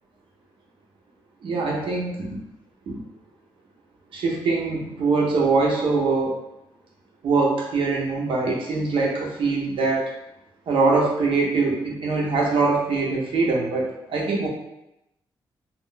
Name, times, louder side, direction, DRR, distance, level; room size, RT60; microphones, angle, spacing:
voice 1, 1.4-2.2 2.9-3.0 4.1-6.3 7.2-10.1 10.7-14.5, right 3 dB, 70° right, -2 dB, 0.8 m, -23 dB
2.4 x 2.1 x 3.8 m, 0.87 s
cardioid pair, 100°, 9 cm